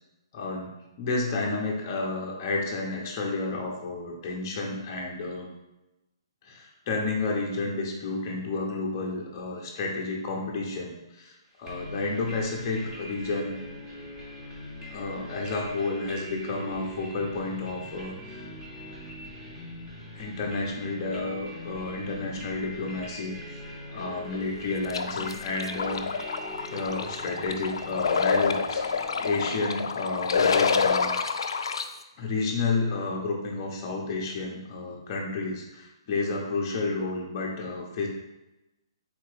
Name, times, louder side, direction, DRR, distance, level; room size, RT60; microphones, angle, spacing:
voice 1, 0.3-0.7 1.0-5.5 6.4-13.5 14.9-18.4 20.1-26.4 26.7-28.8 29.2-31.1 32.2-38.1, left 3 dB, 20° left, -2 dB, 0.7 m, -31 dB
sound 1, 11.7-30.3, equal, 10° right, 0.9 m, -42 dB
sound 2, 24.9-31.8, left 5 dB, 65° left, 0.4 m, -27 dB
3.7 x 2.9 x 4.8 m, 0.99 s
hypercardioid pair, 175°, 3 cm